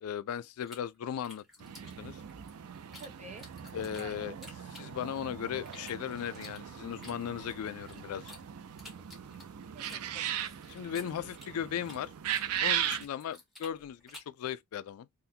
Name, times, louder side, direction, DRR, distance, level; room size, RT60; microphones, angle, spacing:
voice 1, 0.0-1.4 2.0-2.2 3.7-4.3 4.8-8.3 10.7-12.1 12.6-15.1, left 9 dB, 75° left, 0.3 m, -37 dB
sound 1, 0.7-3.1 3.4-5.3 5.7-8.4 8.8-12.1 12.3-14.4, left 2 dB, ahead, 1.1 m, -52 dB
sound 2, 1.6-13.0, right 9 dB, 85° right, 0.4 m, -38 dB
voice 2, 3.0-3.5 3.7-4.5 9.7-10.5, right 2 dB, 30° right, 0.6 m, -49 dB
3.8 x 2.1 x 2.6 m
head